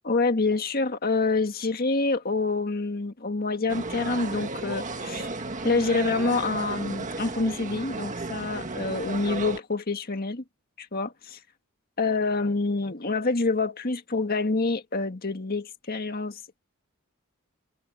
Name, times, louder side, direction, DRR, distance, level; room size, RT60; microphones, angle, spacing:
voice 1, 0.0-5.3 5.6-10.4 10.8-11.4 12.0-16.6, left 3 dB, 45° left, 1.7 m, -27 dB
sound 1, 3.7-9.6, right 3 dB, 40° right, 1.7 m, -34 dB
head